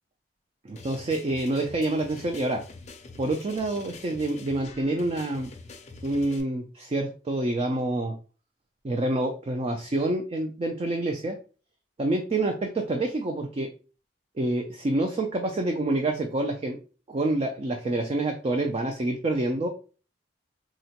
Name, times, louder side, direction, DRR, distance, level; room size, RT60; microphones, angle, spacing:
voice 1, 0.6-2.6 3.2-5.5 6.0-8.1 8.8-11.4 12.0-13.7 14.4-16.8 17.1-19.7, right 2 dB, 35° right, 3 dB, 0.4 m, -27 dB
sound 1, 0.8-6.4, left 3 dB, 40° left, 0.5 m, -45 dB
3.7 x 2.1 x 2.8 m, 0.36 s
head